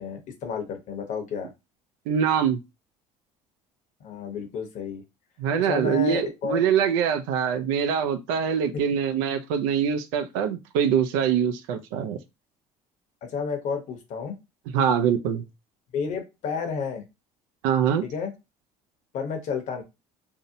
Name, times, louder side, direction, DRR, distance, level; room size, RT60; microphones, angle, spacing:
voice 1, 0.0-1.5 4.0-5.0 5.6-6.6 13.3-14.4 15.9-17.0 18.0-18.3 19.1-19.8, left 6 dB, 60° left, 0.8 m, -31 dB
voice 2, 2.1-2.6 5.4-12.2 14.7-15.4 17.6-18.1, right 8 dB, 90° right, 0.4 m, -24 dB
2.7 x 2.0 x 2.6 m
supercardioid pair, 100°, 14 cm